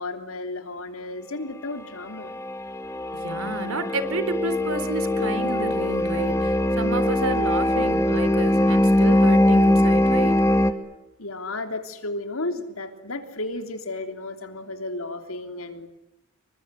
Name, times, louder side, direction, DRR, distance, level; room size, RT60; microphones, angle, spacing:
voice 1, 0.0-2.4 11.2-15.9, left 2 dB, 70° left, 8 dB, 3.2 m, -33 dB
sound 1, 2.2-10.7, left 1 dB, 15° left, 1.9 m, -21 dB
voice 2, 3.1-10.4, right 2 dB, 75° right, 12 dB, 4.0 m, -30 dB
28.0 x 24.0 x 8.2 m, 0.89 s
head